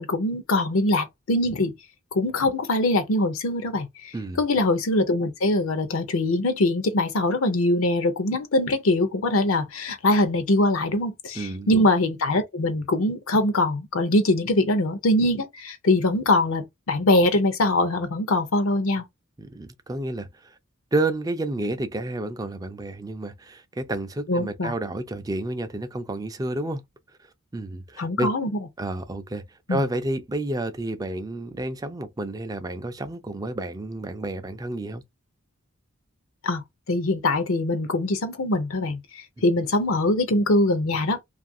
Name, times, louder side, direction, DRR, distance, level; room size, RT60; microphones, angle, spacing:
voice 1, 0.0-1.7 2.1-19.0 24.3-24.7 28.0-28.5 29.7-29.8 36.4-36.6 36.9-41.2, left 2 dB, 70° left, 0.6 m, -23 dB
voice 2, 11.4-11.8 19.4-20.6 20.9-26.8 27.5-28.3 28.8-35.0, right 2 dB, 15° right, 0.3 m, -30 dB
2.6 x 2.4 x 2.6 m
head